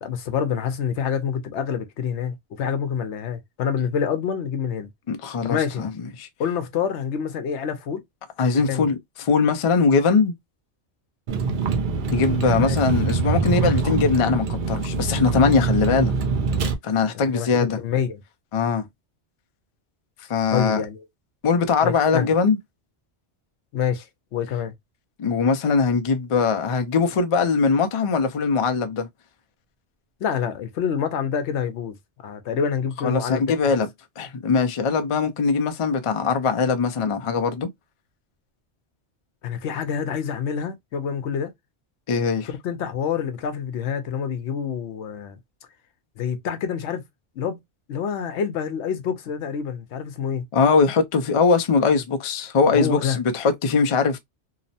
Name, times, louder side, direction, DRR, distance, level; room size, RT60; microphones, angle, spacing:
voice 1, 0.0-4.9 5.4-5.9 6.4-8.0 8.6-8.9 12.6-12.8 17.1-18.2 20.5-21.1 21.8-22.3 23.7-24.7 30.2-32.0 32.2-33.8 39.4-41.5 42.6-45.4 46.2-47.0 47.4-47.6 47.9-50.4 52.7-53.2, left 7 dB, 80° left, 0.9 m, -27 dB
voice 2, 5.1-5.9 6.2-6.3 8.4-10.3 12.1-16.1 16.8-17.8 18.5-18.9 20.3-20.8 21.4-22.6 25.2-29.1 33.0-33.9 34.2-37.7 42.1-42.5 50.5-54.2, left 5 dB, 55° left, 0.3 m, -21 dB
Vehicle, 11.3-16.7, right 4 dB, 55° right, 0.6 m, -24 dB
2.9 x 2.0 x 2.6 m
omnidirectional pair, 1.2 m